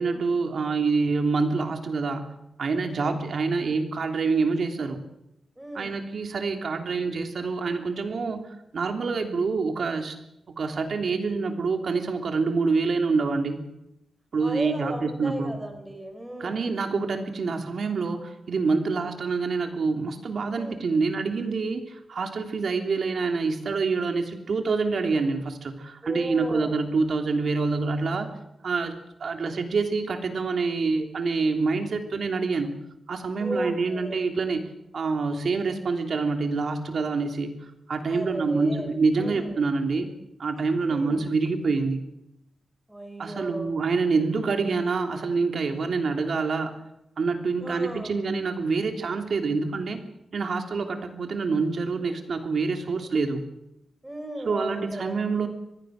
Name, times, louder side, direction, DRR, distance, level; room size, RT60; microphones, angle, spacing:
voice 1, 0.0-2.3 2.6-5.0 5.7-8.5 8.7-10.1 10.6-13.6 14.3-15.5 16.4-28.3 28.6-28.9 29.2-32.7 33.1-34.6 34.9-37.5 37.9-40.1 40.4-42.0 43.2-46.7 47.2-50.0 50.3-53.4 54.4-55.5, right 4 dB, 55° right, 5 dB, 3.1 m, -26 dB
voice 2, 2.9-3.2 5.6-6.0 14.4-16.7 20.6-20.8 26.0-26.8 33.4-34.2 38.1-38.9 39.2-39.7 40.8-41.3 42.9-43.7 47.6-48.1 54.0-55.2, equal, 10° right, 6 dB, 4.1 m, -35 dB
25.5 x 19.5 x 6.5 m, 0.85 s
wide cardioid pair, 145°, 0 cm